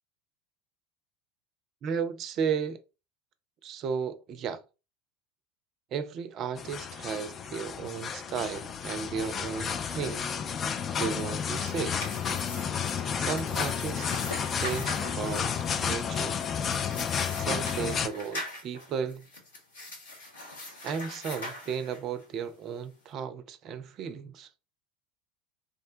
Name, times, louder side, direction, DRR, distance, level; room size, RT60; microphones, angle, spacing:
voice 1, 1.8-2.8 3.6-4.6 5.9-10.4 11.0-12.0 13.1-14.1 14.6-15.5 15.8-16.4 17.3-19.3 20.8-24.5, right 6 dB, 40° right, 0.4 m, -34 dB
sound 1, 6.6-18.1, left 7 dB, 30° left, 0.3 m, -32 dB
sound 2, 11.3-22.2, left 1 dB, 70° left, 1.0 m, -42 dB
3.7 x 2.1 x 2.6 m
figure-of-eight pair, 75°, 0 cm